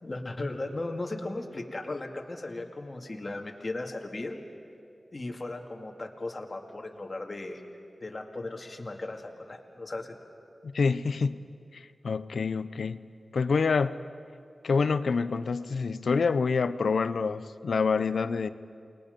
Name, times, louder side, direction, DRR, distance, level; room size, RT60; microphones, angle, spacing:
voice 1, 0.0-4.4 5.1-7.6 8.0-10.2, left 2 dB, 40° left, 2 dB, 2.2 m, -36 dB
voice 2, 10.6-11.4 11.7-13.0 13.3-14.0 14.6-18.5, left 5 dB, 85° left, 13 dB, 0.6 m, -27 dB
29.0 x 20.5 x 5.3 m, 2.4 s
wide cardioid pair, 65°, 0 cm